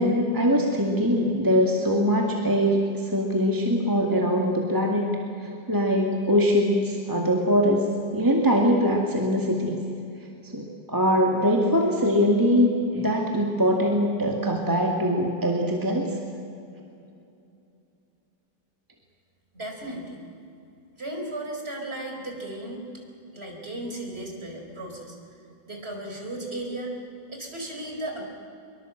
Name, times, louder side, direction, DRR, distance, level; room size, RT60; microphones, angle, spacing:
voice 1, 0.0-5.1 5.7-7.9 8.1-9.8 10.5-16.1, equal, 10° right, 0 dB, 2.0 m, -22 dB
voice 2, 19.5-20.2 21.0-22.8 23.3-25.2 25.7-26.9 27.3-28.2, right 1 dB, 30° right, 1 dB, 4.7 m, -35 dB
23.5 x 23.0 x 7.8 m, 2.7 s
omnidirectional pair, 2.0 m